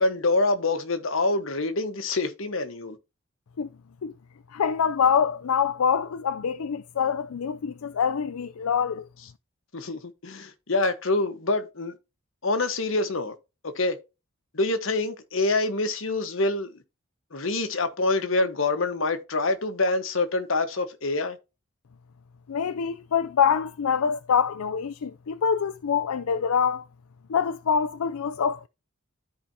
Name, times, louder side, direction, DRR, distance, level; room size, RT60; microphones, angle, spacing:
voice 1, 0.0-3.0 9.7-11.9 12.4-13.3 13.6-14.0 14.5-16.7 17.3-21.4, left 2 dB, 65° left, 1.2 m, -26 dB
voice 2, 4.5-9.1 22.5-26.8 27.3-28.7, left 7 dB, 90° left, 0.4 m, -25 dB
13.0 x 4.9 x 2.7 m
head